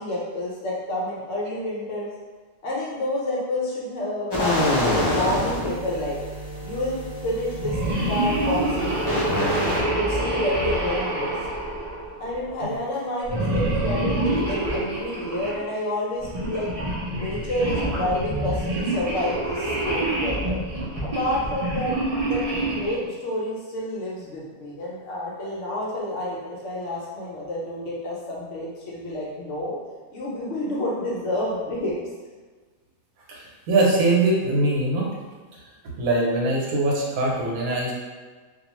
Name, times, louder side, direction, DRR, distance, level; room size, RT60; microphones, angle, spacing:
voice 1, 0.0-2.1 2.6-6.1 6.6-7.0 7.2-9.5 10.0-11.3 12.2-16.7 17.1-20.6 21.0-21.9 22.2-29.8 30.1-32.0, left 1 dB, 65° left, -5 dB, 0.9 m, -29 dB
sound 1, 4.3-9.8, left 1 dB, 30° left, 0.5 m, -27 dB
sound 2, 7.6-12.4 13.3-15.6 16.2-23.0, right 1 dB, 55° right, 0.4 m, -26 dB
voice 2, 33.3-35.1 36.0-37.9, right 2 dB, 80° right, -3 dB, 1.1 m, -22 dB
2.4 x 2.3 x 3.0 m, 1.4 s
omnidirectional pair, 1.5 m